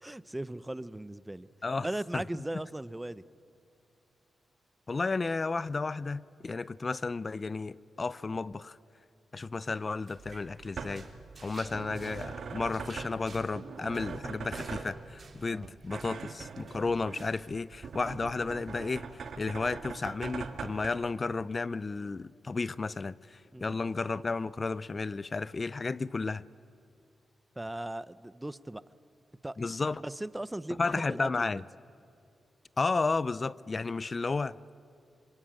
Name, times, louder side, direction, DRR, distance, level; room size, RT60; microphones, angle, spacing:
voice 1, 0.0-1.5 1.8-3.2 11.6-11.8 15.5-15.7 23.5-23.8 27.6-28.8 29.4-29.7 30.0-30.8 31.1-31.5, right 1 dB, 15° right, 16 dB, 0.8 m, -38 dB
voice 2, 4.9-8.8 9.3-11.0 11.4-19.0 19.4-26.4 29.6-30.0 30.8-31.6 32.8-34.7, left 3 dB, 40° left, 18 dB, 0.6 m, -33 dB
sound 1, 9.7-17.6 17.8-18.2 18.5-19.3, right 4 dB, 50° right, 3.6 m, -56 dB
sound 2, 10.2-20.9, right 5 dB, 70° right, 2.0 m, -42 dB
26.0 x 23.5 x 8.9 m, 2.5 s
cardioid pair, 60°, 0 cm